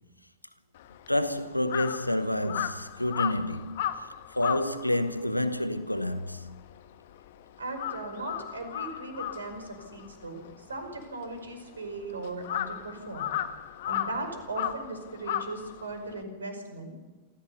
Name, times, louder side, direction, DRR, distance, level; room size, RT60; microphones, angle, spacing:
Crow, 0.8-7.3 7.6-16.2, left 11 dB, 55° left, 1.3 m, -35 dB
voice 1, 1.1-3.8 4.3-6.6, left 1 dB, 85° left, 1.0 m, -29 dB
voice 2, 7.6-10.4 10.7-13.3 13.9-16.9, right 2 dB, 75° right, 5.2 m, -38 dB
27.5 x 15.0 x 7.1 m
figure-of-eight pair, 90°, 0 cm